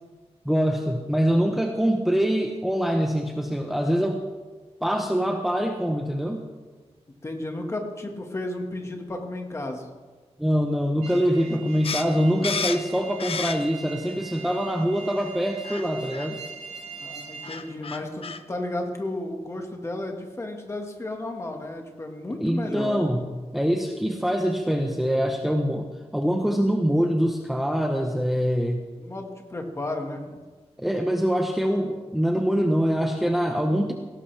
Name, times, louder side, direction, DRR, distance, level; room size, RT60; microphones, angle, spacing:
voice 1, 0.4-4.3 4.8-6.4 10.4-16.4 22.4-23.2 23.5-28.8 30.8-33.9, equal, ahead, 2 dB, 0.9 m, -24 dB
voice 2, 7.2-9.9 17.0-23.0 29.0-30.4, left 1 dB, 25° left, 3 dB, 1.7 m, -33 dB
sound 1, 11.0-17.6, right 6 dB, 85° right, 3.6 m, -42 dB
sound 2, 11.8-13.9 14.3-15.0 15.6-15.9 16.1-16.3 17.1-17.2 17.4-18.4, left 6 dB, 55° left, 0.7 m, -32 dB
18.0 x 17.5 x 3.4 m, 1.3 s
wide cardioid pair, 165°, 11 cm